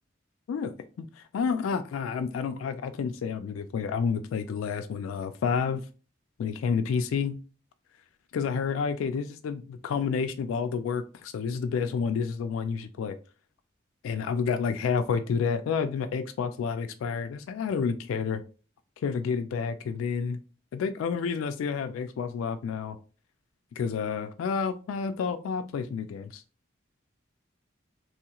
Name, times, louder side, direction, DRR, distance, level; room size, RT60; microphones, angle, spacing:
voice 1, 0.5-5.8 6.4-7.4 8.3-13.2 14.0-18.4 19.0-20.4 20.7-23.0 23.8-26.4, left 6 dB, 85° left, 9 dB, 0.3 m, -30 dB
3.1 x 2.3 x 2.8 m, 0.35 s
head